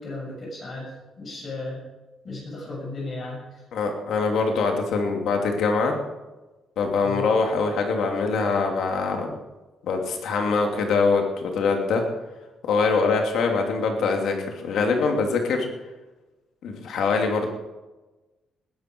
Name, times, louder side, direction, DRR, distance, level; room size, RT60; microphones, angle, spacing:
voice 1, 0.0-1.8 2.2-3.6 7.0-7.3, left 2 dB, 40° left, -2 dB, 6.7 m, -35 dB
voice 2, 3.7-5.9 6.8-9.3 9.8-12.0 12.6-15.7 16.6-17.5, left 4 dB, 70° left, 3 dB, 2.9 m, -23 dB
20.0 x 11.5 x 4.7 m, 1.1 s
cardioid pair, 145°, 0 cm